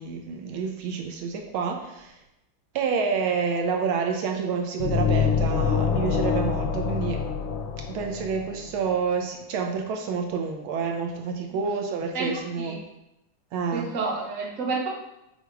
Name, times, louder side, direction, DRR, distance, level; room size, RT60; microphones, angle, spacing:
voice 1, 0.0-2.2 2.7-7.2 7.9-12.8 13.5-13.9, right 5 dB, 80° right, 3 dB, 1.5 m, -28 dB
sound 1, 4.8-8.6, left 6 dB, 75° left, 1.3 m, -25 dB
voice 2, 13.7-14.9, right 4 dB, 45° right, -2 dB, 1.4 m, -30 dB
8.1 x 2.8 x 4.6 m, 0.88 s
omnidirectional pair, 2.3 m